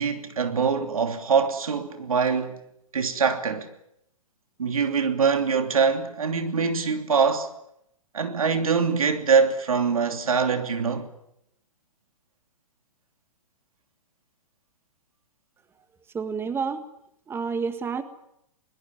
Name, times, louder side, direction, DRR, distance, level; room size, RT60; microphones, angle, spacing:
voice 1, 0.0-2.6 2.9-3.7 4.6-7.5 8.1-11.1, right 5 dB, 70° right, 3.0 m, -23 dB
voice 2, 16.1-16.8 17.3-18.0, right 5 dB, 15° right, 1.7 m, -29 dB
23.0 x 20.5 x 9.6 m
figure-of-eight pair, 115°, 18 cm